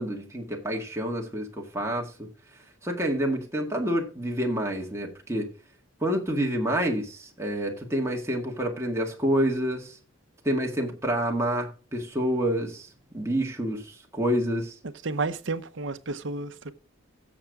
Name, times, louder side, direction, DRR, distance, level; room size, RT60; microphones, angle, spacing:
voice 1, 0.0-2.3 2.8-5.5 6.0-10.0 10.4-12.9 13.1-14.7, equal, 15° right, 1.9 m, -28 dB
voice 2, 15.0-16.7, right 3 dB, 65° right, 0.9 m, -31 dB
14.5 x 7.0 x 3.7 m
head